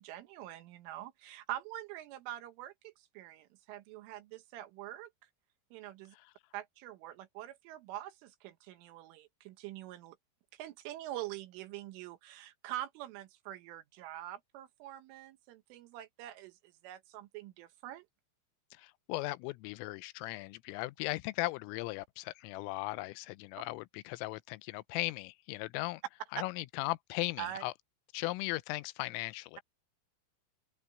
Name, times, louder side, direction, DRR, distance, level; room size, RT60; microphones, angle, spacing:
voice 1, 0.0-5.1 5.7-6.2 6.5-10.2 10.5-18.1 27.4-27.6, right 13 dB, 80° right, 3.7 m, -45 dB
voice 2, 18.7-26.0 26.3-27.7 28.1-29.6, left 20 dB, 85° left, 3.2 m, -37 dB
open air
omnidirectional pair, 5.8 m